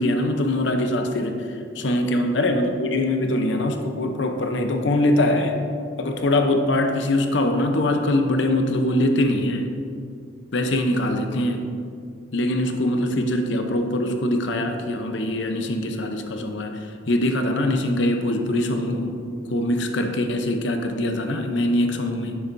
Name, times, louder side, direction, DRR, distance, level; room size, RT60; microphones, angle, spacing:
voice 1, 0.0-1.4 1.8-5.6 6.0-9.7 10.5-11.7 12.3-16.8 17.1-19.2 19.5-22.4, left 1 dB, 65° left, 5 dB, 0.7 m, -23 dB
9.9 x 6.9 x 2.6 m, 2.4 s
head